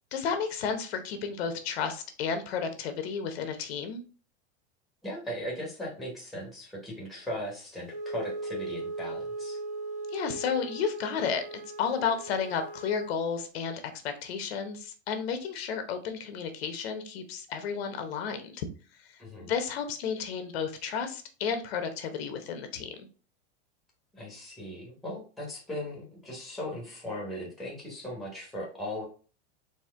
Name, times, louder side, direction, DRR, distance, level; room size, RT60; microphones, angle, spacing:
voice 1, 0.1-4.0 10.1-18.7 19.1-23.1, left 6 dB, 65° left, 7 dB, 0.9 m, -32 dB
voice 2, 5.0-9.6 19.2-19.5 24.1-29.0, left 1 dB, ahead, -2 dB, 1.0 m, -38 dB
Wind instrument woodwind instrument, 7.8-13.1, right 2 dB, 65° right, 1.6 m, -38 dB
4.3 x 2.8 x 3.6 m, 0.36 s
supercardioid pair, 170°, 34 cm